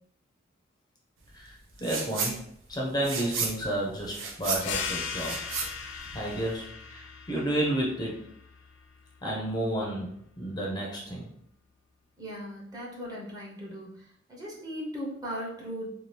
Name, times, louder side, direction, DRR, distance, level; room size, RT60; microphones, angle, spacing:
voice 1, 1.3-5.4 6.1-8.2 9.2-11.3, right 1 dB, 20° left, -2 dB, 0.5 m, -31 dB
sound 1, 1.8-2.4 2.7-6.6, right 4 dB, 85° right, 0.5 m, -33 dB
sound 2, 4.6-9.8, left 6 dB, 75° left, 0.4 m, -39 dB
voice 2, 12.2-14.0 14.3-15.9, equal, 20° right, -4 dB, 0.7 m, -38 dB
2.7 x 2.3 x 3.2 m, 0.71 s
head